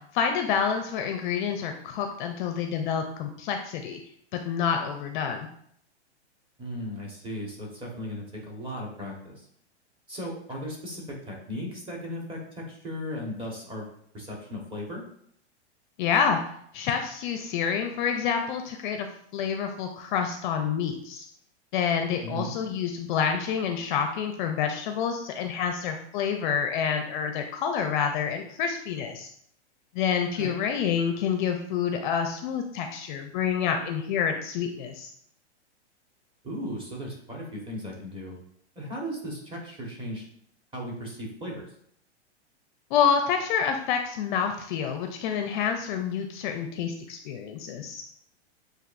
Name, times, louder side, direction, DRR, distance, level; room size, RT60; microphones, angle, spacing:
voice 1, 0.1-4.0 4.3-5.5 16.0-16.4 16.7-19.1 19.3-21.3 21.7-29.3 29.9-35.1 42.9-48.0, left 7 dB, 45° left, 5 dB, 0.5 m, -28 dB
voice 2, 6.6-9.5 10.1-13.9 14.1-15.0 22.2-22.5 30.4-30.5 36.4-38.4 38.7-40.2 40.7-41.6, equal, 15° right, -2 dB, 1.3 m, -36 dB
7.7 x 2.6 x 2.5 m, 0.68 s
hypercardioid pair, 120°, 34 cm